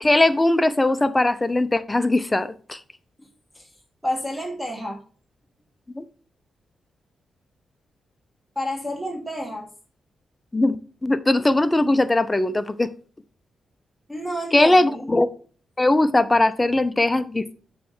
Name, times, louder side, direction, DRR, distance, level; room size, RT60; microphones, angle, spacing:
voice 1, 0.0-2.8 6.0-6.1 10.5-10.8 11.0-12.9 14.5-15.3 15.8-17.5, left 2 dB, 20° left, 13 dB, 0.6 m, -20 dB
voice 2, 4.0-5.0 8.6-9.7 14.1-15.1, equal, 5° right, 0 dB, 1.7 m, -30 dB
7.6 x 3.2 x 5.6 m, 0.41 s
cardioid pair, 70°, 0 cm